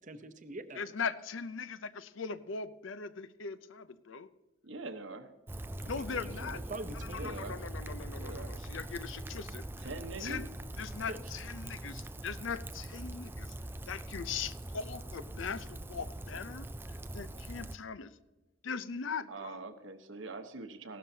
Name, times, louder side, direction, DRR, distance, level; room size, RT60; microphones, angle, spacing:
voice 1, 0.0-0.8 5.8-7.4 11.1-11.3, right 2 dB, 40° right, 10 dB, 0.7 m, -44 dB
voice 2, 0.7-4.3 5.8-6.6 7.1-9.9 10.2-10.4 10.8-13.5 13.9-18.1 18.6-19.6, left 5 dB, 75° left, 14 dB, 0.6 m, -40 dB
voice 3, 4.6-5.3 7.2-7.6 8.2-8.5 9.8-10.5 19.3-21.0, right 3 dB, 75° right, 8 dB, 1.1 m, -43 dB
Rain, 5.5-17.8, right 1 dB, 10° right, 0.3 m, -42 dB
16.5 x 12.5 x 2.8 m, 1.2 s
head